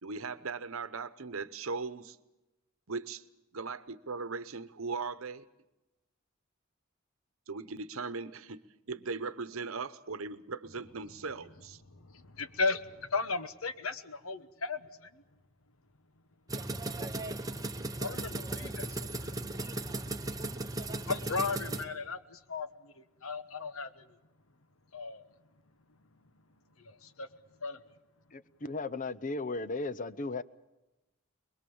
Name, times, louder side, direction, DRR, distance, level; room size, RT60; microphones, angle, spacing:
voice 1, 0.0-2.2 2.9-3.2 3.5-5.5 7.5-8.6 8.9-11.8, right 4 dB, 80° right, 13 dB, 1.0 m, -38 dB
voice 2, 11.9-15.2 18.0-19.3 21.0-24.1 24.9-25.2 26.8-27.3 27.6-27.8, left 4 dB, 85° left, 11 dB, 1.2 m, -36 dB
sound 1, 16.5-21.8, right 2 dB, 20° right, 1.0 m, -37 dB
voice 3, 28.3-30.4, left 3 dB, 40° left, 14 dB, 0.7 m, -36 dB
23.0 x 22.0 x 7.1 m, 1.0 s
head